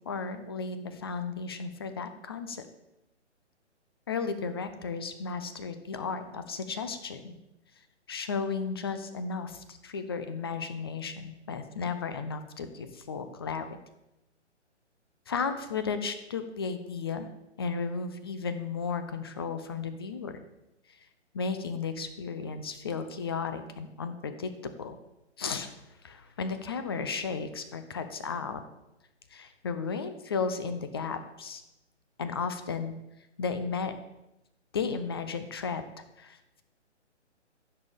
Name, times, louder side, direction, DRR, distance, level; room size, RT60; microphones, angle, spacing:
voice 1, 0.1-2.7 4.1-7.4 8.1-13.7 15.3-17.3 17.6-20.3 20.9-21.0 21.3-25.0 25.4-25.8 26.0-28.6 29.3-31.6 32.2-32.9 33.4-33.9 34.7-35.8 36.2-36.6, left 5 dB, 20° left, 10 dB, 0.5 m, -34 dB
15.5 x 6.5 x 3.5 m, 0.90 s
figure-of-eight pair, 135°, 36 cm